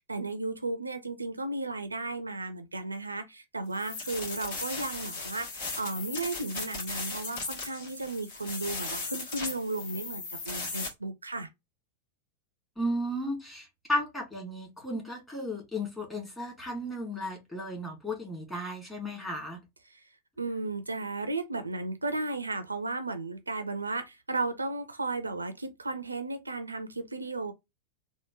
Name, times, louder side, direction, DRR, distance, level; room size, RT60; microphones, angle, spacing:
voice 1, 0.1-11.5 19.9-20.0 20.4-27.5, right 2 dB, 80° right, 0.4 m, -34 dB
sound 1, 3.7-10.9, left 3 dB, 50° left, 1.4 m, -37 dB
voice 2, 12.8-19.6, left 1 dB, 10° left, 1.8 m, -34 dB
3.6 x 2.1 x 2.8 m
figure-of-eight pair, 90°, 0 cm